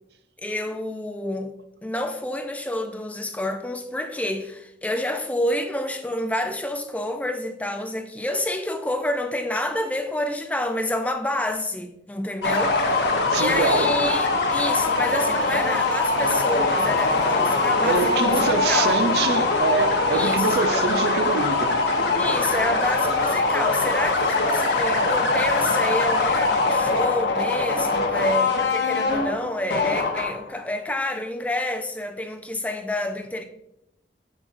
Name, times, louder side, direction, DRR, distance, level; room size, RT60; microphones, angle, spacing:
voice 1, 0.4-1.6 1.8-19.1 20.1-20.8 22.2-33.4, left 1 dB, 10° left, 0.4 m, -28 dB
sound 1, 12.4-30.6, left 3 dB, 80° left, 0.9 m, -22 dB
voice 2, 13.2-13.9 17.8-21.8, right 4 dB, 65° right, 0.4 m, -25 dB
7.1 x 6.3 x 2.5 m
head